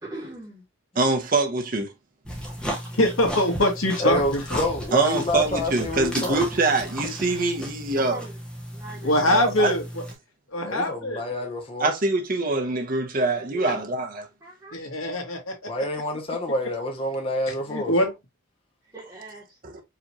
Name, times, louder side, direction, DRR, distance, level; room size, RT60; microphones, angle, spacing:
voice 1, 0.0-0.6 7.9-8.4 8.7-9.5 13.4-13.8 14.4-14.8 18.9-19.6, right 2 dB, 15° right, 1.7 m, -41 dB
voice 2, 1.0-1.9 4.9-8.2 9.3-9.7 11.8-14.2 19.6-19.8, right 3 dB, 45° right, 0.7 m, -24 dB
sound 1, 2.3-10.1, equal, 5° left, 1.0 m, -35 dB
voice 3, 3.0-4.7 6.2-6.3 9.0-10.0 10.5-11.2 14.7-15.8 17.5-18.1, left 1 dB, 85° left, 1.5 m, -24 dB
voice 4, 4.0-6.5 10.6-11.9 15.7-17.9, left 1 dB, 25° left, 0.7 m, -27 dB
4.9 x 3.0 x 2.8 m
head